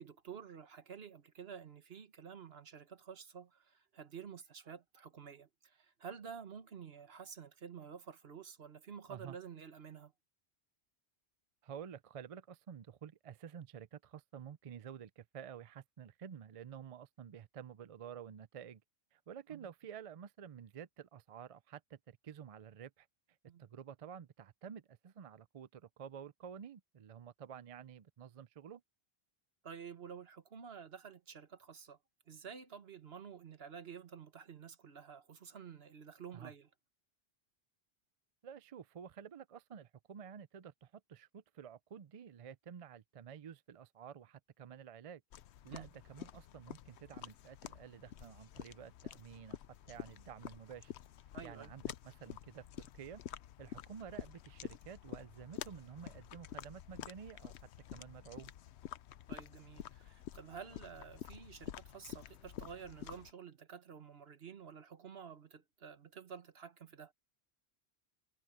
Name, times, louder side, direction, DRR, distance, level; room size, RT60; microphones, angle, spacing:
voice 1, 0.0-10.1 19.5-19.7 23.5-23.6 29.6-32.0 32.3-36.7 45.7-45.9 51.3-51.7 59.3-67.1, right 7 dB, 65° right, 1.4 m, -51 dB
voice 2, 11.6-18.8 19.1-23.1 23.6-28.8 36.3-36.5 38.4-45.2 45.6-49.6 49.9-50.9 51.4-53.2 53.6-57.5 57.9-58.5, right 8 dB, 50° right, 0.4 m, -51 dB
sound 1, 45.3-63.3, left 10 dB, 90° left, 0.9 m, -49 dB
omnidirectional pair, 1.1 m